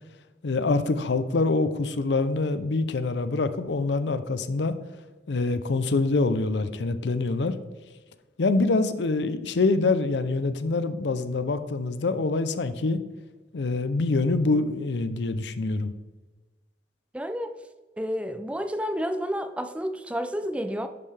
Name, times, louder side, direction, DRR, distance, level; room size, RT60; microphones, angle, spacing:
voice 1, 0.4-4.7 5.3-7.6 8.4-13.0 13.5-15.9, left 3 dB, 85° left, 12 dB, 0.6 m, -25 dB
voice 2, 17.1-17.5 18.0-20.9, equal, 5° right, 9 dB, 0.3 m, -30 dB
10.5 x 5.6 x 3.3 m, 1.2 s
head